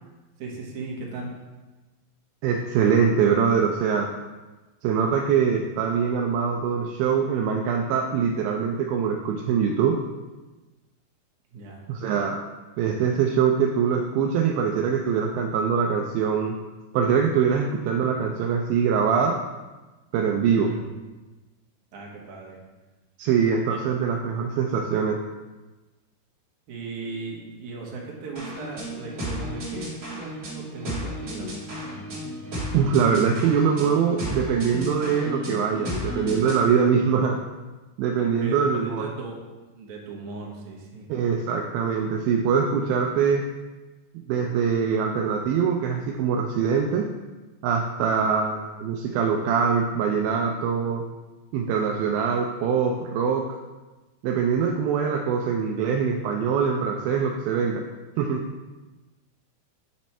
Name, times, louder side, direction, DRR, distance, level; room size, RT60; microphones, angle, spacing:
voice 1, 0.4-1.3 11.5-11.8 20.5-20.8 21.9-22.6 23.7-23.9 26.7-31.9 38.2-39.4 39.7-41.1, right 3 dB, 65° right, -2 dB, 2.2 m, -37 dB
voice 2, 2.4-4.1 4.8-10.0 11.9-12.4 12.8-16.6 16.9-19.4 20.1-20.7 23.2-25.2 32.7-37.4 38.0-39.0 41.1-43.4 44.3-47.1 47.6-51.0 51.5-53.4 54.2-57.8 58.2-58.4, right 6 dB, 80° right, 1 dB, 2.3 m, -23 dB
sound 1, 28.4-36.7, equal, 45° right, 1.6 m, -33 dB
9.3 x 3.1 x 4.2 m, 1.2 s
omnidirectional pair, 4.4 m